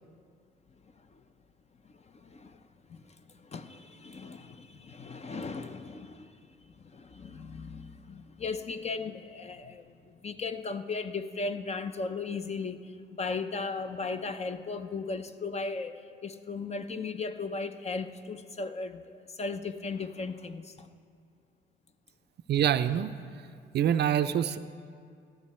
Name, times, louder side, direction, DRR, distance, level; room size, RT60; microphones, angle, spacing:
voice 1, 2.1-2.6 2.9-6.4 6.6-20.9, left 4 dB, 35° left, 0.7 m, -37 dB
voice 2, 22.5-23.1 23.7-24.6, right 9 dB, 55° right, 0.5 m, -25 dB
14.5 x 12.0 x 4.3 m
cardioid pair, 90°, 20 cm